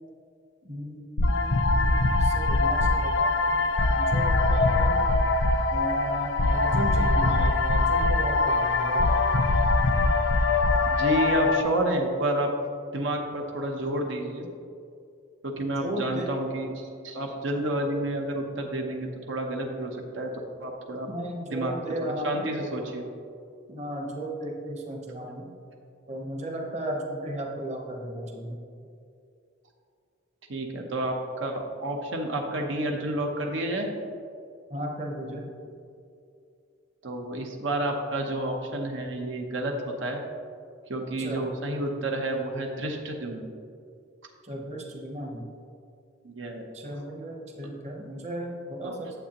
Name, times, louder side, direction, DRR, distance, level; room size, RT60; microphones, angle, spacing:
voice 1, 0.6-5.0 5.7-9.1 15.8-16.3 21.0-22.5 23.7-25.5 26.1-28.6 34.7-35.5 41.2-41.5 44.4-45.5 46.7-49.2, right 1 dB, 35° right, 0 dB, 0.9 m, -35 dB
sound 1, 1.2-11.6, left 2 dB, 85° left, 0.6 m, -23 dB
voice 2, 10.9-12.5 12.9-14.4 15.4-20.3 20.6-21.1 21.5-21.7 22.0-23.0 30.5-33.9 37.0-40.2 40.9-43.5 46.2-46.6 48.8-49.0, right 1 dB, 85° right, 2 dB, 0.9 m, -30 dB
9.1 x 7.4 x 2.9 m, 2.4 s
head